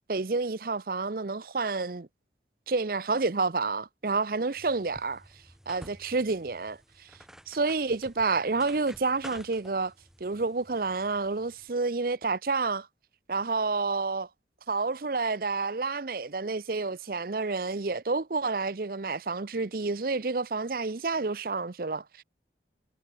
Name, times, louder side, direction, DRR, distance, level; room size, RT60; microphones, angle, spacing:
voice 1, 0.1-2.1 2.7-5.2 5.7-6.8 7.5-9.9 10.2-12.9 13.3-14.3 14.7-22.2, right 3 dB, 50° right, 0.7 m, -29 dB
sound 1, 4.6-11.7, equal, 5° right, 2.5 m, -51 dB
head